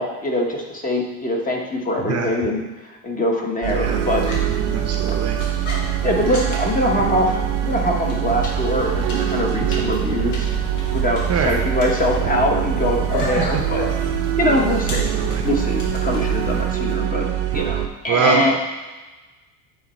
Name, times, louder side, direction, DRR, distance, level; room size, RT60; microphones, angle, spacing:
voice 1, 0.0-4.2 5.1-5.2 6.0-10.5 10.9-13.8 14.4-15.1 15.4-17.3 17.5-18.6, left 1 dB, 20° left, 0 dB, 1.1 m, -23 dB
sound 1, 3.6-17.9, right 12 dB, 70° right, 0.8 m, -23 dB
sound 2, 3.8-16.6, left 2 dB, 70° left, 2.3 m, -32 dB
voice 2, 4.7-5.4 11.3-11.5 13.4-13.5 15.1-15.4 18.1-18.6, right 5 dB, 35° right, 2 dB, 0.8 m, -23 dB
9.2 x 3.7 x 4.3 m, 1.2 s
supercardioid pair, 115°, 44 cm